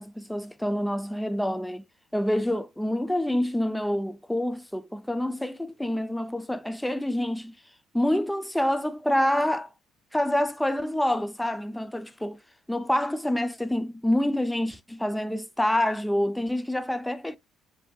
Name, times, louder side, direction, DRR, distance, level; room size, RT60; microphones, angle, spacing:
voice 1, 0.0-1.8 2.1-7.5 7.9-9.7 10.1-12.4 12.7-17.4, left 1 dB, 5° left, 0.3 m, -27 dB
6.9 x 2.6 x 2.2 m
cardioid pair, 105°, 0 cm